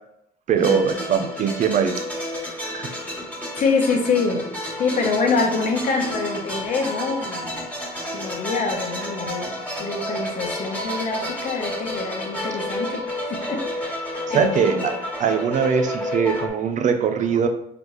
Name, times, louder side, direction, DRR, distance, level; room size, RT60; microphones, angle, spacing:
voice 1, 0.5-1.9 2.7-2.9 14.3-14.9 15.2-17.5, right 7 dB, 45° right, 5 dB, 0.5 m, -21 dB
sound 1, 0.6-16.5, left 1 dB, 10° left, 1.5 m, -31 dB
voice 2, 3.6-4.4 4.8-7.6 8.1-13.0 13.3-14.0 14.3-14.8, left 4 dB, 50° left, 2 dB, 0.9 m, -25 dB
3.9 x 3.4 x 3.1 m, 0.78 s
cardioid pair, 110°, 17 cm